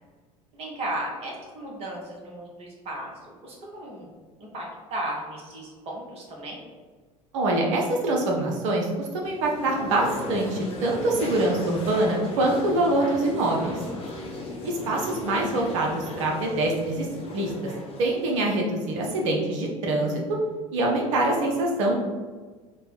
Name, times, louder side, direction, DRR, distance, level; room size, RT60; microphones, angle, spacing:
voice 1, 0.5-4.1 4.4-6.6, right 1 dB, 35° right, -2 dB, 1.0 m, -35 dB
voice 2, 7.3-13.7 14.6-17.1 17.3-17.7 18.0-20.2 20.7-21.9, right 2 dB, 60° right, -1 dB, 0.8 m, -24 dB
sound 1, 9.2-19.2, left 2 dB, 30° left, 0.8 m, -36 dB
3.3 x 2.2 x 4.2 m, 1.4 s
figure-of-eight pair, 70°, 18 cm